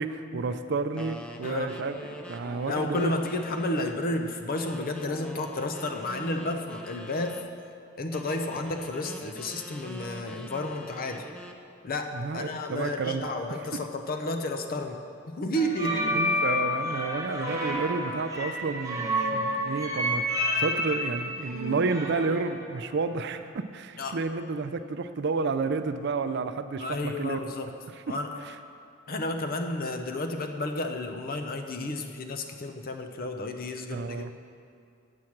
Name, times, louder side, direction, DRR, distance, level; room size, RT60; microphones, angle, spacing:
voice 1, 0.0-3.1 12.1-13.2 16.1-27.4 28.1-28.2 28.5-28.6 33.9-34.3, right 4 dB, 60° right, 10 dB, 0.5 m, -31 dB
sound 1, 1.0-4.0 4.5-7.5 8.1-11.6, equal, 5° left, 0.5 m, -43 dB
voice 2, 2.7-7.4 8.0-11.3 11.8-16.2 24.0-24.2 26.8-27.7 28.1-28.3 29.1-34.3, left 1 dB, 50° left, 5 dB, 0.6 m, -32 dB
sound 2, 15.5-22.5, left 1 dB, 15° right, 1.4 m, -29 dB
8.6 x 7.8 x 5.9 m, 2.4 s
head